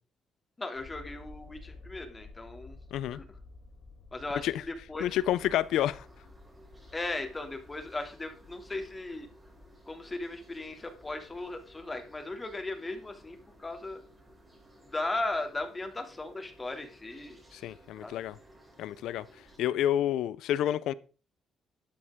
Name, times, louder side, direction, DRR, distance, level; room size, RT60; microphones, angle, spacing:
voice 1, 0.6-2.8 3.1-3.2 4.1-4.5 4.9-5.1 6.9-9.3 9.9-14.0 14.9-17.4 18.0-18.1, left 2 dB, 20° left, 2.8 m, -37 dB
sound 1, 0.7-14.9 15.5-15.6, left 3 dB, 70° left, 4.4 m, -54 dB
voice 2, 5.0-6.1 17.5-18.4 18.8-19.3 19.6-20.9, left 12 dB, 85° left, 0.6 m, -29 dB
sound 2, 5.0-19.6, right 1 dB, 15° right, 6.9 m, -57 dB
12.5 x 10.0 x 3.8 m
cardioid pair, 90°, 0 cm